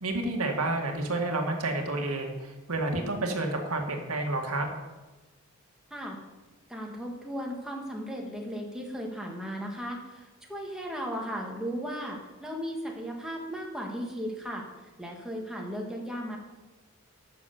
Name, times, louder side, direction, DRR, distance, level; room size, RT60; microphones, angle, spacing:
voice 1, 0.0-4.7, right 2 dB, 85° right, 2 dB, 1.9 m, -30 dB
voice 2, 6.7-16.4, equal, 5° right, -1 dB, 1.8 m, -36 dB
11.5 x 6.8 x 7.1 m, 1.2 s
head